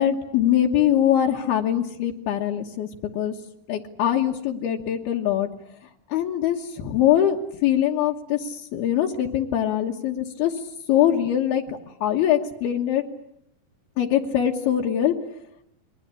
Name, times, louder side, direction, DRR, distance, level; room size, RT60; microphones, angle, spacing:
voice 1, 0.0-2.9 3.1-3.3 3.7-5.5 6.1-10.6 10.9-13.0 14.0-15.1, left 10 dB, 75° left, 0 dB, 3.2 m, -23 dB
28.5 x 23.0 x 8.4 m, 0.76 s
omnidirectional pair, 4.6 m